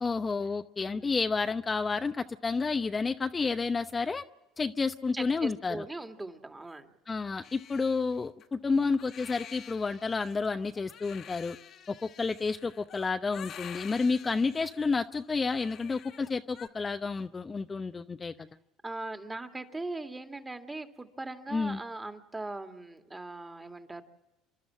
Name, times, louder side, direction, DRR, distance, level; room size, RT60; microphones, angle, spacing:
voice 1, 0.0-4.2 4.6-5.8 7.1-11.6 11.9-18.5 21.5-21.8, left 4 dB, 25° left, 8 dB, 0.8 m, -30 dB
voice 2, 5.1-6.9 18.8-24.0, right 2 dB, 15° right, 6 dB, 2.2 m, -40 dB
Crying sobbing, 7.4-16.7, left 9 dB, 55° left, 1.7 m, -49 dB
28.5 x 12.0 x 7.5 m, 1.1 s
hypercardioid pair, 70°, 0 cm